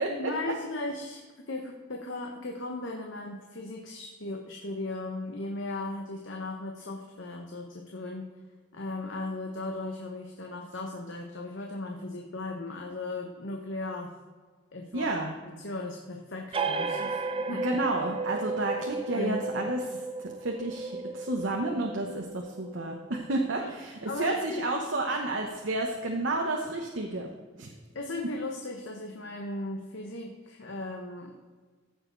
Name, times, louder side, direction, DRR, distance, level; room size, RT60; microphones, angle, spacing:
voice 1, 0.1-8.3 8.7-14.1 14.7-15.1 15.4-17.7 19.1-19.7 23.6-23.7 24.0-24.7 27.9-31.3, left 2 dB, 70° left, 2 dB, 1.1 m, -37 dB
voice 2, 14.9-15.4 17.0-17.1 17.5-27.3 27.6-27.7, right 2 dB, 75° right, 1 dB, 1.1 m, -31 dB
sound 1, 16.5-23.7, right 3 dB, 30° right, 0.6 m, -34 dB
15.5 x 6.6 x 3.9 m, 1.4 s
head